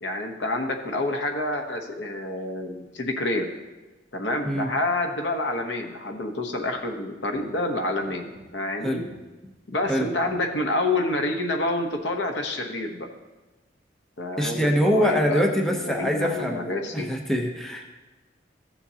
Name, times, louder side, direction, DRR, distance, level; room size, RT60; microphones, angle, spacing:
voice 1, 0.0-3.5 4.1-9.0 9.7-13.1 14.2-17.1, left 2 dB, 75° left, 4 dB, 1.0 m, -28 dB
voice 2, 8.8-9.1 9.9-10.1 14.4-16.6 16.9-17.8, equal, ahead, 1 dB, 0.7 m, -24 dB
14.5 x 7.1 x 2.8 m, 1.1 s
head